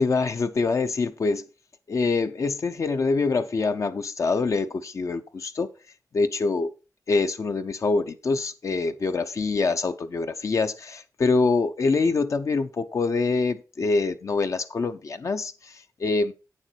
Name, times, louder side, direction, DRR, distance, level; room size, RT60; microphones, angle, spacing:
voice 1, 0.0-1.4 1.9-5.7 6.1-6.7 7.1-15.7 16.0-16.3, left 3 dB, 50° left, 0.8 m, -25 dB
9.0 x 7.1 x 4.6 m
wide cardioid pair, 160°, 7 cm